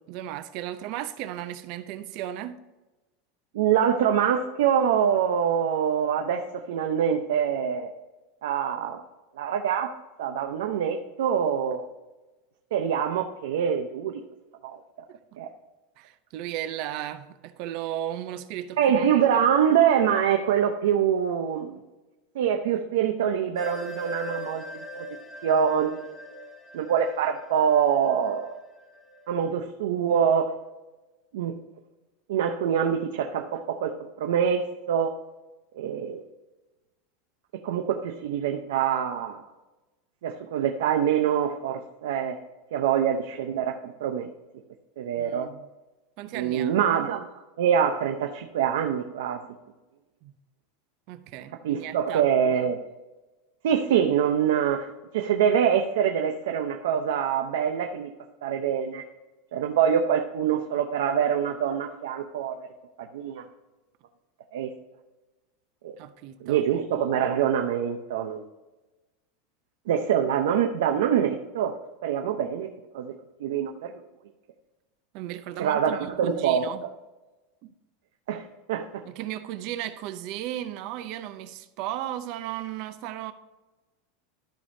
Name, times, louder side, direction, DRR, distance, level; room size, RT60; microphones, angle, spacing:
voice 1, 0.1-2.6 16.0-18.8 19.3-19.4 45.2-45.7 46.2-46.8 50.2-50.3 51.1-52.3 66.0-66.6 75.1-76.8 77.6-77.7 79.1-83.3, right 12 dB, 45° right, 0.6 m, -35 dB
voice 2, 3.5-7.9 8.4-9.0 9.4-9.9 10.2-11.9 12.7-14.2 14.6-14.8 15.4-15.5 18.8-21.8 22.3-24.6 24.9-25.1 25.4-26.0 26.7-28.5 29.3-30.5 31.3-31.5 32.3-33.9 34.2-35.1 35.8-36.2 37.6-39.4 40.2-42.4 42.7-44.3 45.0-45.5 46.3-47.3 47.6-49.4 51.6-52.8 53.6-54.9 55.1-58.1 58.4-59.0 59.5-62.7 63.0-63.4 64.5-64.7 65.8-65.9 66.4-68.4 69.9-71.7 72.0-72.7 72.9-73.1 73.4-73.9 75.6-76.6 78.3-79.0, right 8 dB, 80° right, 0.7 m, -25 dB
sound 1, 23.5-29.3, equal, 10° left, 0.9 m, -41 dB
13.0 x 5.2 x 2.7 m
supercardioid pair, 170°, 0 cm